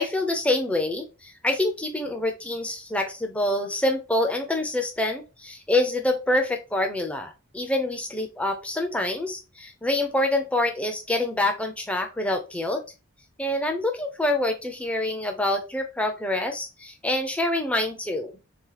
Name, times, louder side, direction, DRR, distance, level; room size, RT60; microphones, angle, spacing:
voice 1, 0.0-12.8 13.4-18.4, left 1 dB, 5° left, 4 dB, 0.5 m, -26 dB
2.9 x 2.3 x 3.8 m, 0.30 s
head